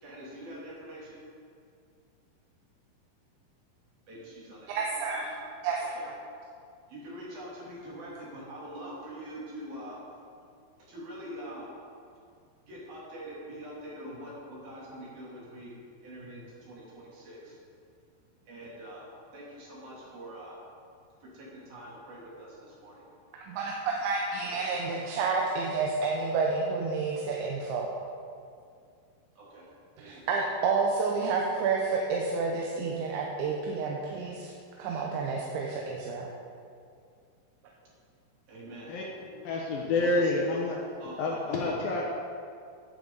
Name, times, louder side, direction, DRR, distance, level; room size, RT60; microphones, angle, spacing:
voice 1, 0.0-1.2 4.1-4.7 5.9-6.1 6.9-10.0 10.4-10.5 10.9-11.7 12.7-15.7 16.0-17.6 18.5-19.1 19.3-20.6 21.3-23.0 24.4-25.0 29.4-29.7 30.0-30.3 38.5-38.9 40.0-40.4 41.0-41.4, right 1 dB, 55° right, -6 dB, 4.7 m, -44 dB
voice 2, 4.7-5.3 5.6-6.2 23.5-27.9 30.0-34.5 34.8-36.3, right 4 dB, 90° right, -1 dB, 3.3 m, -30 dB
voice 3, 38.9-40.8 41.2-42.0, left 2 dB, 70° left, -2 dB, 2.3 m, -29 dB
16.0 x 8.7 x 4.0 m, 2.3 s
omnidirectional pair, 5.1 m